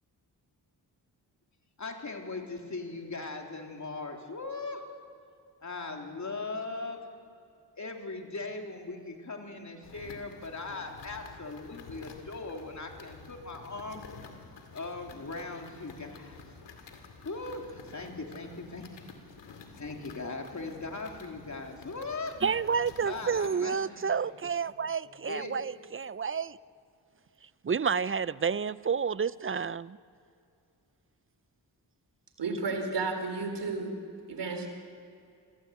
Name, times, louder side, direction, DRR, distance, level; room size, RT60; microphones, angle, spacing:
voice 1, 1.8-4.8 5.6-7.0 7.8-14.0 14.7-16.4 17.2-19.1 19.5-22.3 23.0-24.0 25.0-25.5, left 3 dB, 40° left, 2 dB, 3.4 m, -39 dB
sound 1, 9.8-23.5, left 4 dB, 80° left, 2.4 m, -50 dB
voice 2, 22.4-26.6 27.6-30.0, right 6 dB, 30° right, 18 dB, 0.5 m, -30 dB
voice 3, 32.4-34.0 34.3-34.7, right 3 dB, 70° right, 5 dB, 3.7 m, -32 dB
26.0 x 15.0 x 8.2 m, 2.5 s
cardioid pair, 50°, 43 cm